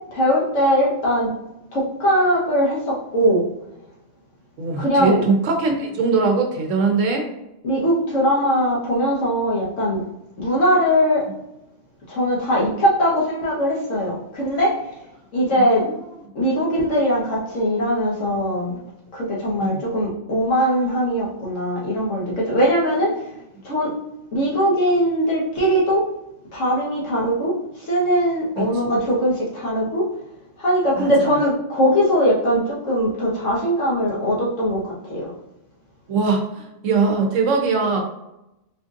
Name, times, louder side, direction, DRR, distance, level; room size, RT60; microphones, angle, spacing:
voice 1, 0.1-1.3 1.7-3.4 4.8-5.2 7.6-10.0 10.4-11.3 12.1-14.8 15.3-15.8 16.3-18.8 19.1-23.1 23.6-23.9 24.3-26.0 26.5-27.5 27.9-30.1 30.6-34.8 35.1-35.3, equal, 90° left, -5 dB, 1.6 m, -20 dB
voice 2, 4.6-7.3 15.6-15.9 19.6-19.8 28.6-28.7 31.0-31.4 36.1-38.0, right 4 dB, 85° right, 2 dB, 1.1 m, -21 dB
4.3 x 2.6 x 2.5 m, 0.89 s
omnidirectional pair, 1.3 m